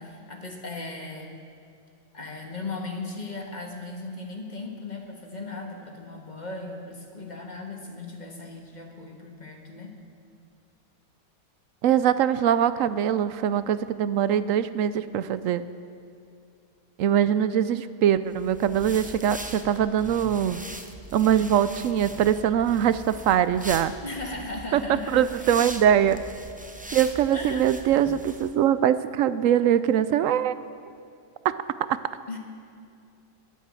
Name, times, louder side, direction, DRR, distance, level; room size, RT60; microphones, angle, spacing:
voice 1, 0.0-1.3 2.1-10.0 24.0-25.5 27.3-28.0 32.3-32.4, left 2 dB, 30° left, 2 dB, 1.6 m, -37 dB
voice 2, 11.8-15.6 17.0-20.6 21.1-23.9 24.7-24.8 25.1-26.3 26.9-30.5 31.4-31.5 31.9-32.0, right 9 dB, 70° right, 14 dB, 0.9 m, -22 dB
sound 1, 18.3-28.5, right 1 dB, 10° right, 0.3 m, -41 dB
21.0 x 8.2 x 7.6 m, 2.5 s
omnidirectional pair, 1.6 m